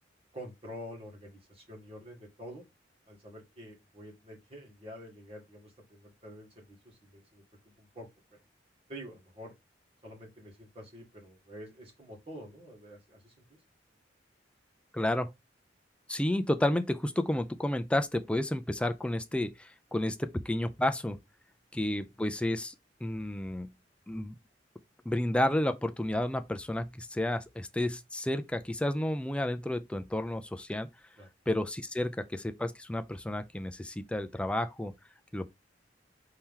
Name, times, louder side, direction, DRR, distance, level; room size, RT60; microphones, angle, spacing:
voice 1, 0.3-2.6 3.1-7.4 7.8-8.4 8.9-9.5 10.0-13.6 31.2-31.3, equal, 35° right, 1.8 m, -48 dB
voice 2, 14.9-15.3 16.1-21.2 21.7-22.7 23.0-23.7 24.1-24.4 25.1-30.9 31.5-34.9 35.3-35.5, left 1 dB, 5° left, 0.4 m, -31 dB
4.5 x 2.8 x 3.7 m
head